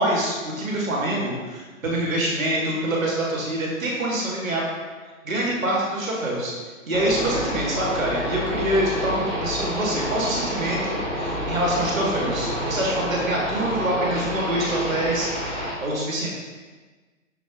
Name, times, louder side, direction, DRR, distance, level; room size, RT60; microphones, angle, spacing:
voice 1, 0.0-4.6 5.2-6.5 6.9-16.3, right 1 dB, 5° left, -20 dB, 0.4 m, -25 dB
sound 1, 6.9-15.7, equal, 25° left, 1.7 m, -28 dB
5.8 x 5.3 x 3.6 m, 1.3 s
hypercardioid pair, 160°, 39 cm